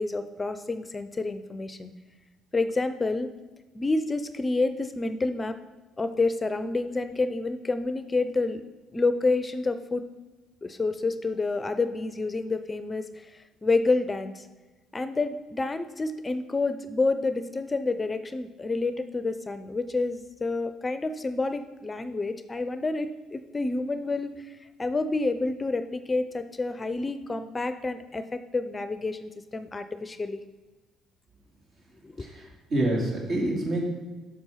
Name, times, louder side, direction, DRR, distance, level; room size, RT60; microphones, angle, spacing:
voice 1, 0.0-1.9 2.5-3.3 3.7-5.6 6.0-8.6 8.9-10.0 10.6-14.5 14.9-30.4 32.0-32.3, left 3 dB, 25° left, 11 dB, 0.5 m, -29 dB
voice 2, 32.2-33.9, right 1 dB, 60° right, -2 dB, 2.8 m, -27 dB
6.2 x 6.1 x 5.5 m, 1.2 s
hypercardioid pair, 60°, 0 cm